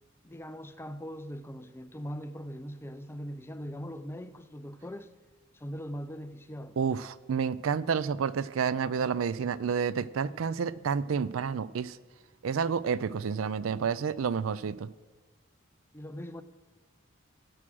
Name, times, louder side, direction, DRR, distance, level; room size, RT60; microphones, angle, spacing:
voice 1, 0.2-5.1 5.5-7.0 15.9-16.4, equal, 10° left, 0.5 m, -41 dB
voice 2, 6.8-12.0 12.4-14.9, right 6 dB, 90° right, 0.4 m, -30 dB
16.0 x 6.2 x 6.2 m
head